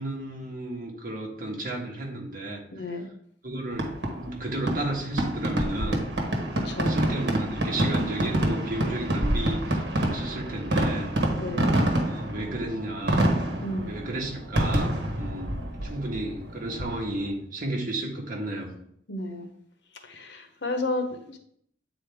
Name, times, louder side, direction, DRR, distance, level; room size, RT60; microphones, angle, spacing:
voice 1, 0.0-2.9 3.4-6.1 6.7-11.1 11.9-13.3 13.9-18.7, right 1 dB, 50° right, 0 dB, 1.6 m, -33 dB
voice 2, 2.7-3.1 6.6-7.0 11.3-11.7 13.6-13.9 19.1-19.5 20.0-21.4, left 2 dB, 80° left, 6 dB, 1.0 m, -32 dB
Fireworks, 3.7-17.3, right 1 dB, 80° right, 1.4 m, -27 dB
8.7 x 4.2 x 3.5 m, 0.68 s
head